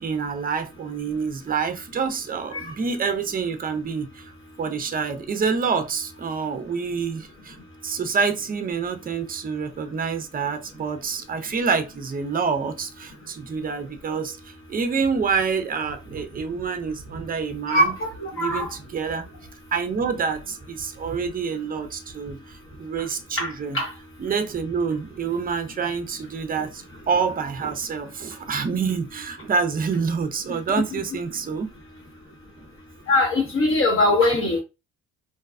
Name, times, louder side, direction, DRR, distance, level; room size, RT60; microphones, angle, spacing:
voice 1, 0.0-4.3 4.6-7.6 7.8-17.9 18.3-19.3 19.7-23.8 24.2-31.7, right 5 dB, 30° right, 0.5 m, -27 dB
voice 2, 17.7-18.7 23.4-23.9 30.5-31.0 33.1-34.6, left 2 dB, 45° left, 0.9 m, -22 dB
2.6 x 2.2 x 2.4 m
cardioid pair, 90°, 30 cm